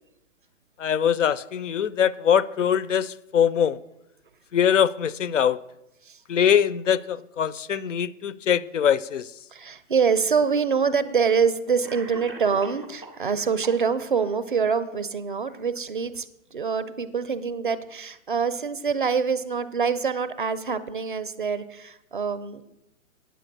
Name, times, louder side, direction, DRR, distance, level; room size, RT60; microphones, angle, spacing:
voice 1, 0.8-3.8 4.5-5.6 6.3-9.3, left 8 dB, 65° left, 0.5 m, -22 dB
voice 2, 9.5-22.6, right 6 dB, 40° right, 0.5 m, -25 dB
Cough, 10.1-10.2 11.2-11.3 11.8-13.3 13.6-14.2, right 1 dB, 10° left, 0.5 m, -42 dB
9.0 x 6.8 x 6.5 m
hypercardioid pair, 165°, 41 cm